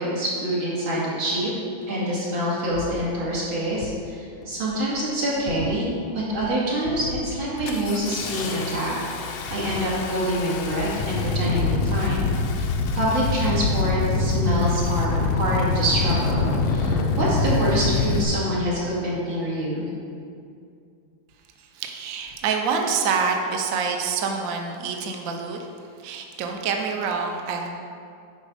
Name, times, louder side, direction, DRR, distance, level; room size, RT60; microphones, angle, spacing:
voice 1, 0.0-1.5 1.9-5.9 6.1-8.9 9.2-12.2 12.6-12.7 12.9-19.9, right 1 dB, 75° right, -7 dB, 2.9 m, -26 dB
Engine starting, 1.9-2.0 2.7-3.0 3.7-4.1 4.4-4.9 5.4-5.9 6.3-6.5 6.9-18.2, left 3 dB, 75° left, 1.4 m, -25 dB
voice 2, 21.7-25.6 26.0-27.7, right 5 dB, 60° right, 2 dB, 0.9 m, -26 dB
10.5 x 4.3 x 5.0 m, 2.4 s
omnidirectional pair, 2.2 m